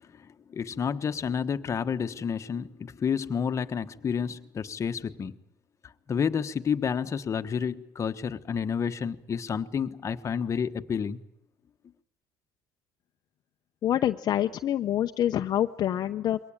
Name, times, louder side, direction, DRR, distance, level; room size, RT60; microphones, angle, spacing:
voice 1, 0.5-5.3 6.1-11.2, left 7 dB, 35° left, 1.3 m, -30 dB
voice 2, 13.8-16.4, left 11 dB, 55° left, 0.8 m, -26 dB
23.0 x 18.5 x 9.0 m
supercardioid pair, 95°, 8 cm